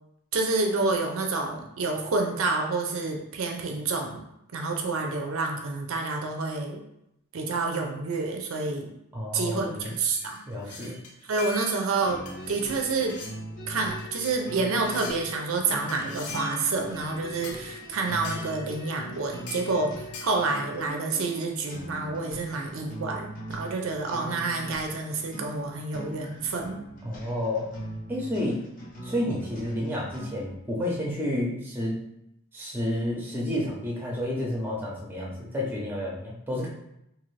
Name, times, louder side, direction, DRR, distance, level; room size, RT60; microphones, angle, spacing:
voice 1, 0.3-4.2 4.5-6.8 7.3-8.9 9.3-10.9 11.2-12.2 12.5-13.2 13.7-26.8, right 3 dB, 65° right, 2 dB, 0.4 m, -28 dB
voice 2, 9.1-9.9 10.5-11.0 27.0-27.7 28.1-28.6 29.0-31.9 32.5-36.7, left 1 dB, 10° right, -3 dB, 0.5 m, -30 dB
sound 1, 9.8-11.9 12.3-12.7 13.1-13.4 14.0-14.4 14.8-15.2 15.9-16.7 17.4-17.6 18.2-18.5 19.5-19.7 20.1-20.4, left 4 dB, 90° left, 0.5 m, -42 dB
sound 2, 12.0-30.6, equal, 35° left, 0.7 m, -41 dB
2.6 x 2.5 x 3.1 m, 0.81 s
head